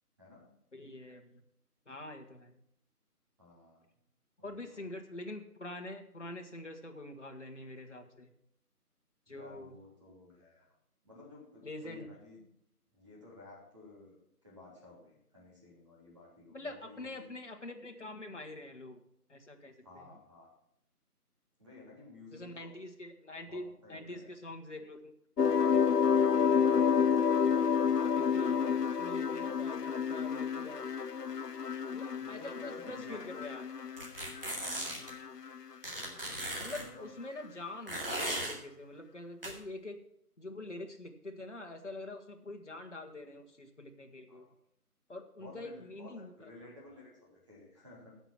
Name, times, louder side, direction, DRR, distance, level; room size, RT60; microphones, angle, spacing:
voice 1, 0.2-0.5 3.4-3.8 4.4-4.8 9.3-10.7 11.0-12.4 12.9-14.2 14.4-17.3 19.8-20.5 21.6-22.7 23.4-24.3 26.7-27.0 32.2-33.3 33.8-33.9 36.0-36.4 36.7-37.1 44.3-44.5 45.4-46.1 46.4-48.1, left 2 dB, 20° right, -3 dB, 3.2 m, -54 dB
voice 2, 0.7-1.4 1.8-2.6 4.4-8.3 9.3-9.7 11.6-12.1 16.5-19.0 19.3-20.1 22.3-25.0 25.4-25.6 26.3-26.7 27.5-30.9 31.9-33.7 36.6-40.0 40.4-44.5 45.1-46.5, left 2 dB, 50° left, 4 dB, 1.6 m, -45 dB
sound 1, 25.4-34.5 34.8-35.5, left 7 dB, 85° left, 0.7 m, -29 dB
sound 2, 34.0-35.1 35.8-36.8 37.9-38.5 39.4-39.5, right 1 dB, 35° right, 2.2 m, -37 dB
14.5 x 6.1 x 6.0 m, 0.73 s
figure-of-eight pair, 165°, 46 cm